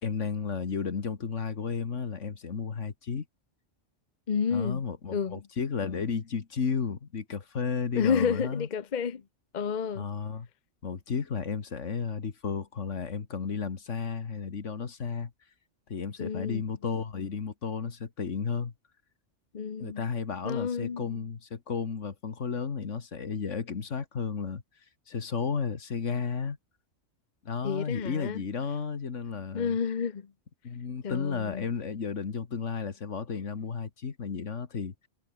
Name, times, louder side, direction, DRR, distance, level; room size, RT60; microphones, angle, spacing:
voice 1, 0.0-3.3 4.5-8.7 9.9-10.5 10.8-15.3 15.9-18.7 19.8-24.6 25.1-26.6 27.5-29.8 30.6-34.9, left 5 dB, 75° left, 2.0 m, -33 dB
voice 2, 4.3-4.8 5.1-5.4 7.9-9.2 9.5-10.0 16.2-16.6 19.5-20.0 20.4-21.2 27.6-28.4 29.5-30.3 31.0-31.7, left 6 dB, 40° left, 1.0 m, -30 dB
omnidirectional pair, 1.3 m